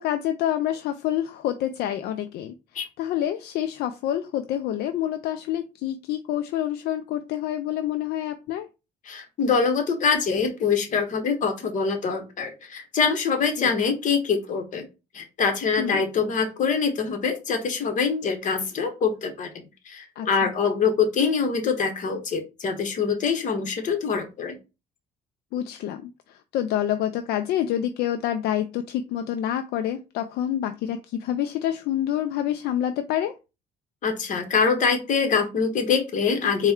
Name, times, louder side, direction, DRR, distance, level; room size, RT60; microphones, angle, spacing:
voice 1, 0.0-2.5 3.0-8.7 13.6-13.7 15.8-16.0 20.2-20.3 25.5-26.1 26.5-33.3, left 11 dB, 70° left, 8 dB, 0.4 m, -27 dB
voice 2, 9.1-14.8 15.1-24.6 34.0-36.7, left 5 dB, 50° left, 5 dB, 1.1 m, -24 dB
4.2 x 2.2 x 3.5 m, 0.28 s
cardioid pair, 110°, 17 cm